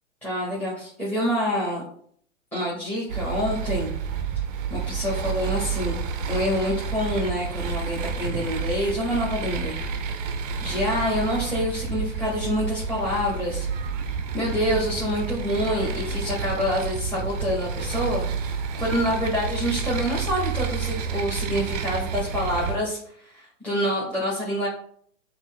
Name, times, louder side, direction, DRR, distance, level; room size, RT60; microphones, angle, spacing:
voice 1, 0.2-1.8 2.5-3.9 4.7-6.0 6.3-10.2 10.6-13.7 14.1-24.7, equal, 5° left, -6 dB, 1.1 m, -27 dB
sound 1, 3.1-22.8, right 5 dB, 35° right, 0.5 m, -29 dB
6.9 x 2.8 x 2.2 m, 0.62 s
figure-of-eight pair, 115°, 40 cm